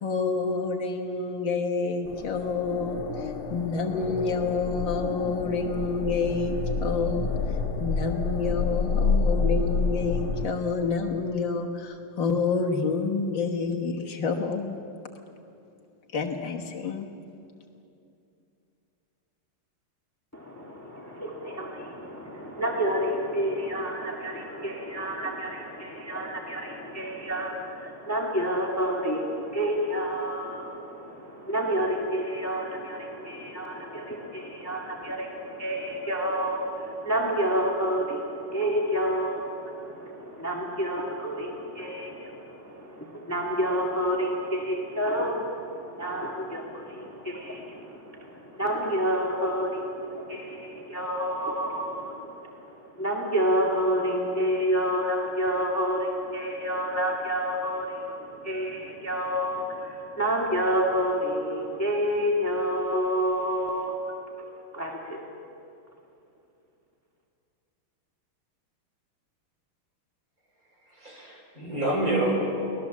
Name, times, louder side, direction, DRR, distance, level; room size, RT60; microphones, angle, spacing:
voice 1, 0.0-14.8 16.1-17.1, left 4 dB, 65° left, 2 dB, 2.0 m, -28 dB
sound 1, 2.1-10.5, left 4 dB, 80° left, 2.1 m, -29 dB
voice 2, 20.3-64.0 64.7-65.2, equal, 5° left, -1 dB, 1.9 m, -29 dB
voice 3, 70.7-72.9, right 1 dB, 40° right, -1 dB, 5.0 m, -28 dB
24.0 x 18.0 x 7.3 m, 2.6 s
omnidirectional pair, 2.3 m